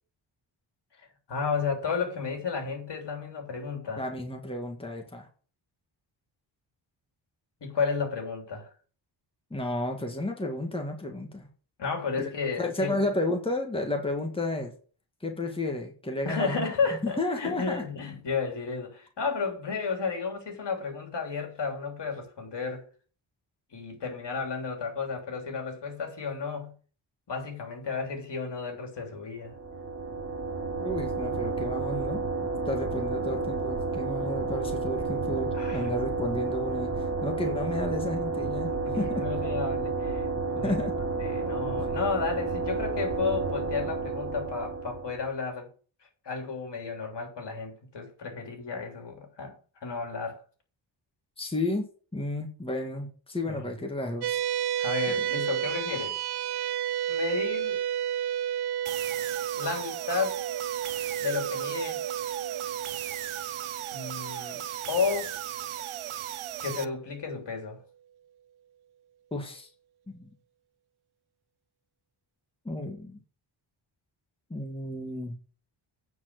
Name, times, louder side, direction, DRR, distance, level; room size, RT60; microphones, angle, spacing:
voice 1, 1.3-4.0 7.6-8.7 11.8-13.1 16.2-22.8 23.7-26.7 27.3-29.5 35.5-35.9 38.8-40.8 41.2-45.7 46.2-49.5 49.8-50.4 53.4-53.8 54.8-56.2 57.1-57.8 59.6-60.4 61.2-62.0 63.9-65.4 66.6-67.8, left 5 dB, 60° left, 3.3 m, -32 dB
voice 2, 4.0-5.3 9.5-11.5 12.2-12.3 12.6-14.7 15.2-16.6 17.0-17.8 30.8-32.2 32.6-39.2 40.6-40.9 51.4-51.9 52.1-54.4 69.3-69.7 70.1-70.3 72.6-73.2 74.5-75.4, left 1 dB, 10° left, 1.9 m, -32 dB
sound 1, 29.4-45.3, right 3 dB, 30° right, 2.1 m, -31 dB
sound 2, 54.2-66.9, right 10 dB, 55° right, 0.5 m, -32 dB
sound 3, 58.8-66.8, right 11 dB, 85° right, 0.8 m, -37 dB
9.4 x 4.7 x 7.8 m
cardioid pair, 90°, 48 cm